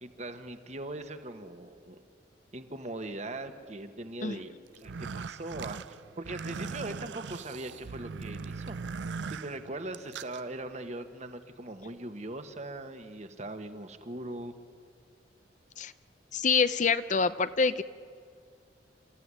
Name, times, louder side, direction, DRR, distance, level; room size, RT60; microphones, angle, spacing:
voice 1, 0.0-2.0 2.5-8.8 9.3-14.6, right 2 dB, 40° right, 8 dB, 1.5 m, -40 dB
sound 1, 4.7-10.4, right 5 dB, 85° right, 0.5 m, -40 dB
voice 2, 16.3-17.8, left 5 dB, 45° left, 13 dB, 0.6 m, -26 dB
28.5 x 14.5 x 9.8 m, 2.2 s
head